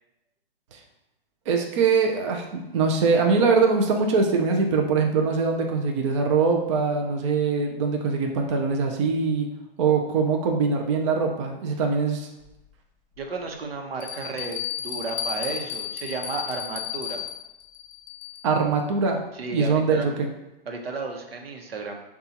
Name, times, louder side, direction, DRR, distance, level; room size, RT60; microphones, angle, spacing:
voice 1, 1.5-9.5 9.8-12.3 18.4-19.2 19.5-20.3, right 4 dB, 35° right, 2 dB, 0.4 m, -22 dB
Bell, 12.4-12.5 13.2-13.3 14.0-18.6, left 9 dB, 45° left, 0.7 m, -33 dB
voice 2, 13.2-17.2 19.3-20.1 20.7-22.0, right 3 dB, 90° right, 3 dB, 0.9 m, -33 dB
6.6 x 2.3 x 2.8 m, 0.93 s
hypercardioid pair, 150°, 29 cm